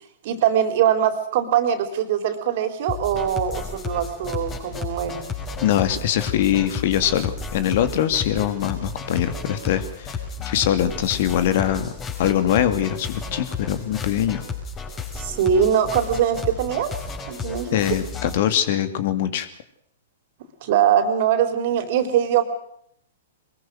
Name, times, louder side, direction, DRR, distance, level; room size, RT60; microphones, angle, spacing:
voice 1, 0.2-5.2 15.2-16.9 17.3-17.8 20.6-22.4, right 9 dB, 50° right, 10 dB, 4.0 m, -22 dB
sound 1, 2.9-18.4, left 4 dB, 20° left, 5.5 m, -33 dB
voice 2, 5.6-10.2 10.4-11.9 12.2-14.4 17.7-19.5, left 10 dB, 50° left, 12 dB, 2.6 m, -22 dB
23.0 x 22.0 x 6.4 m, 0.69 s
figure-of-eight pair, 110°, 0 cm